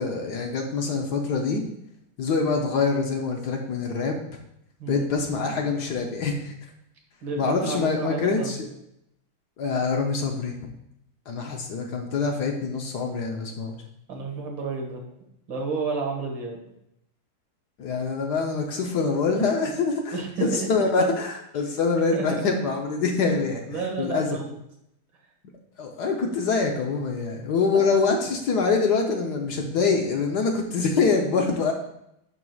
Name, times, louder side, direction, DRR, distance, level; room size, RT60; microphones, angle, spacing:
voice 1, 0.0-1.6 2.2-4.2 4.9-6.5 7.4-8.7 9.6-10.6 11.3-13.8 17.8-23.6 24.0-24.4 25.8-31.7, left 4 dB, 60° left, 2 dB, 1.2 m, -25 dB
voice 2, 7.2-8.6 14.1-15.0 15.5-16.6 20.1-20.9 22.1-22.4 23.5-24.5 27.7-28.1, right 4 dB, 70° right, 0 dB, 2.1 m, -31 dB
11.0 x 4.6 x 2.3 m, 0.78 s
omnidirectional pair, 2.2 m